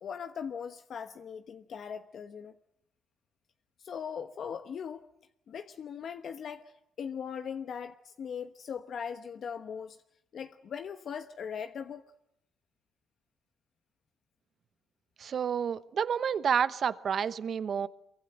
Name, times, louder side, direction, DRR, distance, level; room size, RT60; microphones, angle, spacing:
voice 1, 0.0-2.5 3.8-5.1 5.5-6.7 7.0-10.0 10.3-12.1, left 7 dB, 60° left, 8 dB, 1.1 m, -39 dB
voice 2, 15.2-17.9, right 7 dB, 55° right, 15 dB, 1.0 m, -29 dB
24.0 x 23.0 x 7.9 m, 0.78 s
cardioid pair, 90°, 0 cm